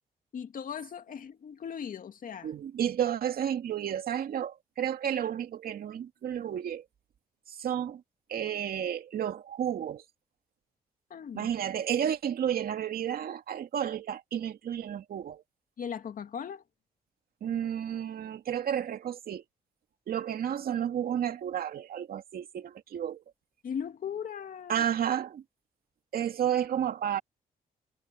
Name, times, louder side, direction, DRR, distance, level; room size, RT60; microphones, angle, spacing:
voice 1, 0.3-2.5 11.1-11.5 15.8-16.6 23.6-24.9, left 7 dB, 60° left, 2.3 m, -38 dB
voice 2, 2.4-6.8 7.5-8.0 8.3-10.0 11.3-15.4 17.4-19.4 20.1-23.2 24.7-25.4 26.1-27.2, right 9 dB, 70° right, 2.4 m, -31 dB
cardioid pair, 75°, 16 cm